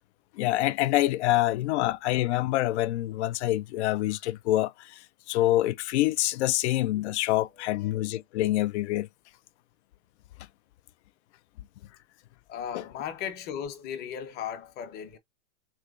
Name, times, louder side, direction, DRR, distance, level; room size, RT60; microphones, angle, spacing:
voice 1, 0.3-9.1 12.7-12.8, left 15 dB, 55° left, 0.5 m, -26 dB
voice 2, 12.5-15.2, left 8 dB, 25° left, 0.8 m, -36 dB
3.2 x 3.1 x 2.4 m
hypercardioid pair, 130°, 41 cm